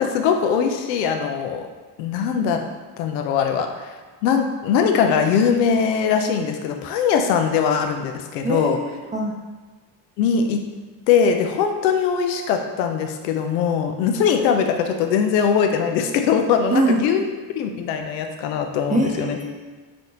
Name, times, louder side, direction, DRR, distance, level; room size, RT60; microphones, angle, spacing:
voice 1, 0.0-1.7 2.0-2.6 3.0-4.0 4.2-8.8 10.2-10.6 11.1-17.2 17.6-19.4, left 7 dB, 80° left, 5 dB, 0.6 m, -21 dB
voice 2, 8.4-9.3 16.7-17.0 18.9-19.8, right 2 dB, 15° right, 1 dB, 0.7 m, -23 dB
4.1 x 3.2 x 2.7 m, 1.3 s
hypercardioid pair, 40°, 50 cm